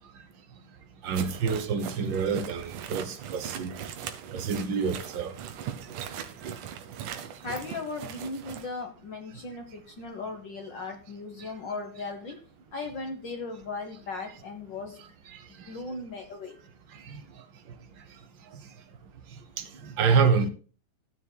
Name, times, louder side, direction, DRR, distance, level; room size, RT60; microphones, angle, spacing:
voice 1, 1.0-3.7 4.3-5.3 11.4-11.5 15.3-15.7 16.9-17.2 18.5-18.6 19.6-20.5, right 5 dB, 70° right, 1.1 m, -27 dB
sound 1, 1.1-8.7, right 9 dB, 90° right, 2.4 m, -39 dB
voice 2, 7.4-12.4 12.7-15.0 15.7-16.5, left 3 dB, 60° left, 1.2 m, -37 dB
15.5 x 9.7 x 2.3 m
omnidirectional pair, 3.5 m